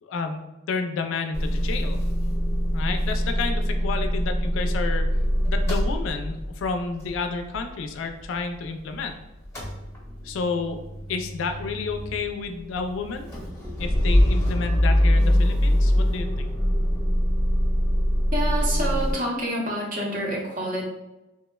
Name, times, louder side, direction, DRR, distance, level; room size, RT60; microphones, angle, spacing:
voice 1, 0.0-2.0 2.7-5.1 5.5-9.1 10.2-10.8 11.1-13.3 13.8-16.5, left 4 dB, 75° left, 6 dB, 0.3 m, -30 dB
Motor vehicle (road) / Engine starting / Idling, 1.3-9.1 9.3-19.1, equal, 15° left, 0.8 m, -24 dB
voice 2, 18.3-20.8, right 1 dB, 40° right, -2 dB, 0.7 m, -28 dB
3.4 x 2.0 x 2.2 m, 1.0 s
head